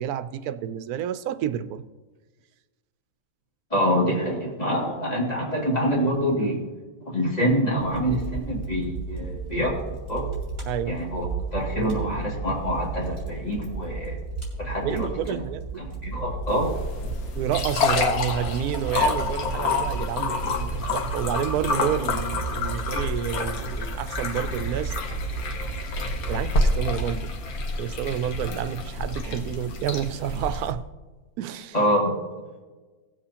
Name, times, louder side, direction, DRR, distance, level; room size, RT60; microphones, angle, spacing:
voice 1, 0.0-1.8 4.7-4.9 10.7-11.1 14.8-15.7 17.4-25.0 26.2-27.3 27.8-30.8 31.4-31.8, right 10 dB, 85° right, 1.1 m, -29 dB
voice 2, 3.7-6.6 7.1-9.8 10.1-10.3 10.8-11.2 11.5-14.2 14.6-15.4 15.8-16.7 31.7-32.0, equal, 25° left, 2.4 m, -26 dB
Fire, 7.8-27.1, right 4 dB, 40° right, 3.0 m, -34 dB
sound 1, 16.5-30.7, left 3 dB, 75° left, 1.4 m, -28 dB
17.5 x 7.6 x 2.9 m
omnidirectional pair, 1.6 m